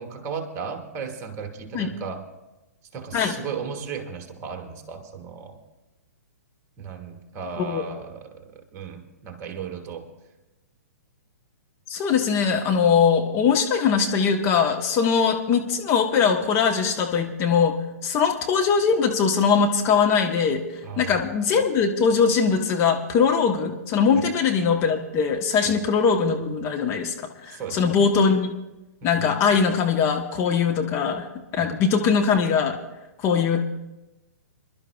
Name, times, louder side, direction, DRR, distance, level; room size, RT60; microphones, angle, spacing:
voice 1, 0.0-2.2 2.9-5.6 6.8-10.1 20.8-21.2 24.1-24.3 25.6-25.7 27.5-28.0 29.0-29.4 31.6-31.8, right 6 dB, 30° right, 3 dB, 1.7 m, -35 dB
voice 2, 11.9-20.6 21.0-28.6 29.0-32.8 33.2-33.6, left 6 dB, 30° left, 4 dB, 1.0 m, -21 dB
26.0 x 11.5 x 2.3 m, 1.0 s
figure-of-eight pair, 120°, 9 cm